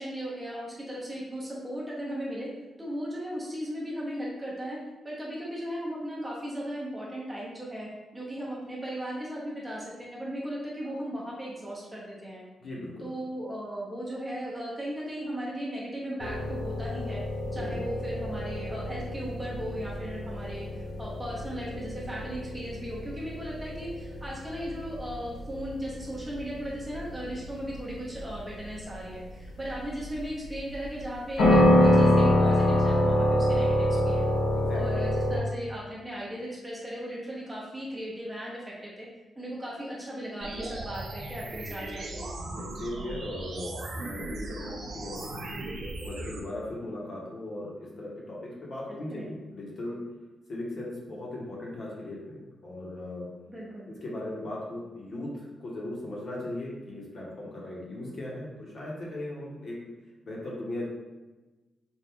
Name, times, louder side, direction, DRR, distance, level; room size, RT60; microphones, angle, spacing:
voice 1, 0.0-2.5 2.8-4.8 5.0-12.4 13.0-17.2 17.5-34.3 34.7-39.1 39.4-42.1 48.9-49.3 53.5-53.9, equal, 10° right, -6 dB, 0.9 m, -37 dB
voice 2, 12.6-13.1 17.6-17.8 34.5-35.0 42.5-45.7 46.0-50.0 50.5-53.3 53.9-59.8 60.2-60.9, left 1 dB, 40° left, -4 dB, 1.0 m, -38 dB
sound 1, 16.2-35.4, left 1 dB, 90° left, 0.9 m, -26 dB
sound 2, 40.4-46.4, right 2 dB, 50° right, 0.6 m, -38 dB
4.4 x 2.4 x 3.6 m, 1.2 s
wide cardioid pair, 165°, 0 cm